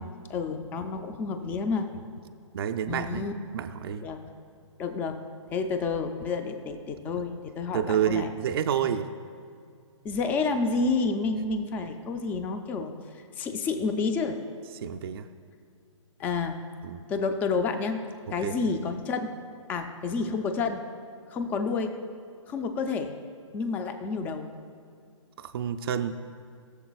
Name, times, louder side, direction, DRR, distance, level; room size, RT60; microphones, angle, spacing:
voice 1, 0.0-1.9 2.9-3.3 4.0-4.2 4.8-5.2 5.5-8.3 10.0-12.9 13.4-14.4 16.2-16.6 17.1-18.0 18.3-19.3 19.7-20.8 21.3-22.0 22.5-23.2 23.5-24.5, left 4 dB, 10° left, 7 dB, 0.4 m, -29 dB
voice 2, 2.5-3.3 3.5-4.0 7.2-7.3 7.7-9.1 14.8-15.3 16.8-17.0 18.4-18.6 25.4-26.1, right 9 dB, 50° right, 6 dB, 0.5 m, -29 dB
20.5 x 7.0 x 2.3 m, 2.3 s
hypercardioid pair, 155°, 17 cm